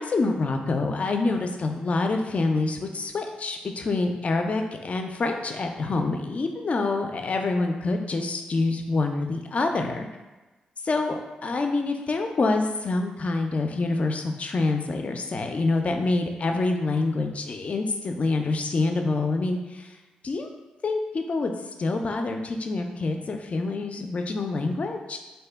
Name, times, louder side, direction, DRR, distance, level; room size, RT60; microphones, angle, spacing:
voice 1, 0.0-10.0 10.9-19.6 20.2-20.5 20.8-21.5 21.8-25.2, left 3 dB, 45° left, 4 dB, 0.4 m, -26 dB
2.6 x 2.1 x 3.4 m, 1.2 s
supercardioid pair, 55°, 3 cm